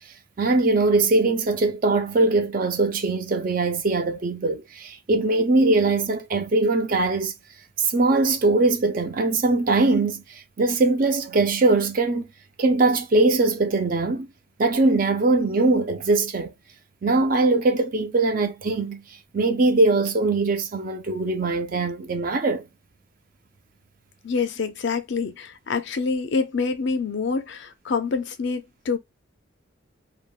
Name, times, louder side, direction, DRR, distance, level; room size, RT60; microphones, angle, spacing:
voice 1, 0.4-7.3 7.8-12.3 12.6-14.3 14.6-16.5 17.0-19.0 19.3-22.6, right 3 dB, 40° right, 0.5 m, -21 dB
voice 2, 24.2-29.0, left 4 dB, 55° left, 0.5 m, -26 dB
3.4 x 2.2 x 2.3 m
head